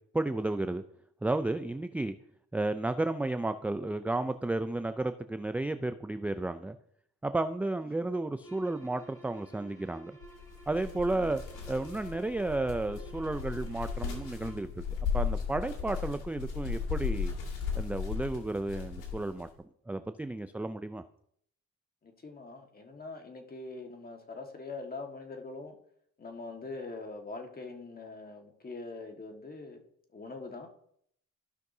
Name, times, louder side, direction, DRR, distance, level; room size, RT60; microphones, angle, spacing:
voice 1, 0.1-0.8 1.2-2.1 2.5-6.8 7.2-10.1 10.7-11.4 11.7-14.8 15.1-17.3 17.8-19.5 19.9-21.0, right 2 dB, 5° right, 10 dB, 0.3 m, -32 dB
sound 1, 8.4-14.7, right 3 dB, 10° left, 3.8 m, -53 dB
sound 2, 10.2-19.5, left 6 dB, 90° left, 2.1 m, -36 dB
voice 2, 18.9-19.2 22.0-25.7 26.2-29.8 30.1-30.7, left 3 dB, 30° left, 3 dB, 1.6 m, -43 dB
15.0 x 5.9 x 2.7 m, 0.69 s
cardioid pair, 90°, 30 cm